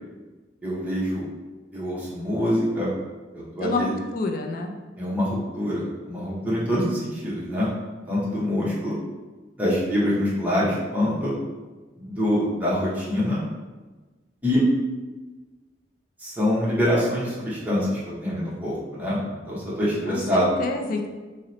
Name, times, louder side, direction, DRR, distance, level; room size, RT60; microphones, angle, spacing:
voice 1, 0.6-1.2 1.7-2.9 3.3-3.9 5.0-7.7 8.1-9.0 9.6-11.3 12.0-13.4 14.4-14.6 16.2-20.5, equal, 10° right, -8 dB, 0.7 m, -25 dB
voice 2, 3.6-4.7 20.1-20.2 20.6-21.1, left 3 dB, 50° left, 4 dB, 0.3 m, -28 dB
2.8 x 2.0 x 3.8 m, 1.2 s
head